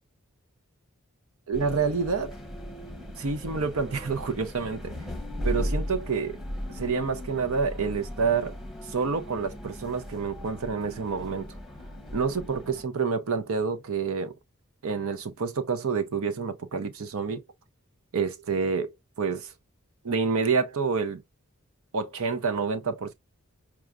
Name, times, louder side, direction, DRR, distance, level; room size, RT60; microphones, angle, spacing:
sound 1, 1.5-12.8, equal, ahead, 0.9 m, -37 dB
voice 1, 1.5-2.3 3.2-5.0 5.4-6.4 6.7-11.5 12.1-14.3 14.8-17.4 18.1-19.5 20.0-21.2 21.9-23.1, right 5 dB, 80° right, 0.7 m, -28 dB
6.1 x 2.3 x 2.3 m
head